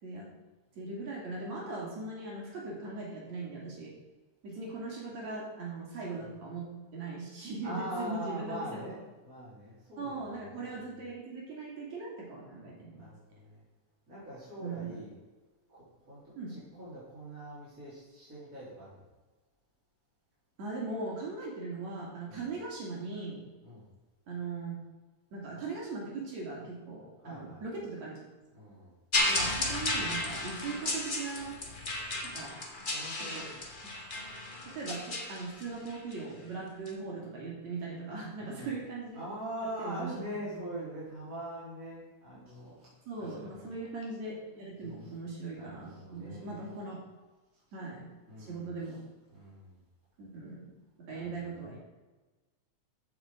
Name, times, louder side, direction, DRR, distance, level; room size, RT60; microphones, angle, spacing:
voice 1, 0.8-3.9 4.4-6.7 6.9-8.9 10.0-13.0 14.6-15.0 16.4-16.5 20.6-23.4 24.3-24.8 25.3-28.2 29.3-31.6 32.2-32.6 33.2-33.5 34.7-39.2 39.8-40.3 40.5-40.7 43.1-47.0 47.7-48.1 48.4-49.0 50.2-50.7 51.1-51.8, right 3 dB, 60° right, -3 dB, 3.8 m, -39 dB
voice 2, 7.6-10.5 12.9-13.6 14.1-15.1 15.7-19.0 22.3-22.4 23.6-23.9 27.2-27.6 28.5-28.9 32.6-33.6 34.6-34.8 38.4-38.7 39.1-42.9 43.2-43.6 44.8-45.1 45.5-46.7 48.3-48.7 49.3-49.8 51.1-51.8, right 1 dB, 25° right, -10 dB, 4.4 m, -43 dB
sound 1, 29.1-36.1 36.9-37.0, left 2 dB, 45° left, 0.6 m, -34 dB
15.0 x 6.0 x 5.2 m, 1.2 s
omnidirectional pair, 3.6 m